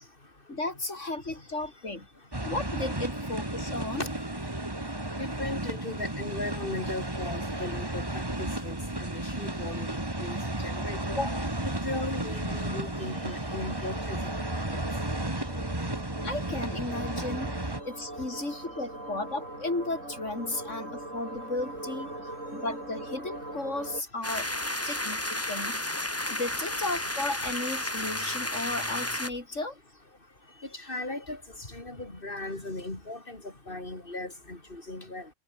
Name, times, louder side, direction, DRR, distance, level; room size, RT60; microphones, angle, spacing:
voice 1, 0.5-2.1 2.4-4.1 11.1-11.5 16.2-17.5 17.8-22.1 22.5-24.5 24.8-25.9 26.3-29.7, left 2 dB, 70° left, 4.9 m, -34 dB
sound 1, 2.3-17.8, right 1 dB, 20° right, 2.4 m, -33 dB
voice 2, 5.2-8.7 9.2-9.9 10.2-10.4 10.6-11.0 11.6-14.2 30.9-31.4 31.7-33.4 33.7-35.2, left 2 dB, 45° left, 4.7 m, -37 dB
sound 2, 11.2-24.0, right 1 dB, 80° right, 8.0 m, -42 dB
sound 3, 24.2-29.3, left 1 dB, 10° left, 1.8 m, -32 dB
omnidirectional pair, 1.3 m